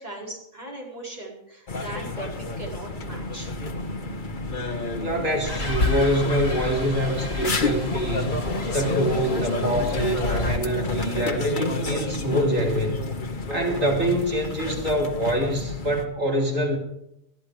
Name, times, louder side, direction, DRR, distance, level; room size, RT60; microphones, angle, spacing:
voice 1, 0.0-3.5, right 1 dB, 30° right, -3 dB, 5.0 m, -38 dB
sound 1, 1.7-16.1, left 3 dB, 40° left, 1.5 m, -30 dB
sound 2, 2.9-12.9, right 4 dB, 50° right, 1.9 m, -41 dB
voice 2, 5.0-8.4 8.7-13.0 13.5-16.8, equal, 75° right, 0 dB, 3.8 m, -25 dB
sound 3, 5.4-10.6, left 2 dB, 70° left, 3.4 m, -30 dB
20.0 x 13.0 x 5.0 m, 0.81 s
omnidirectional pair, 1.4 m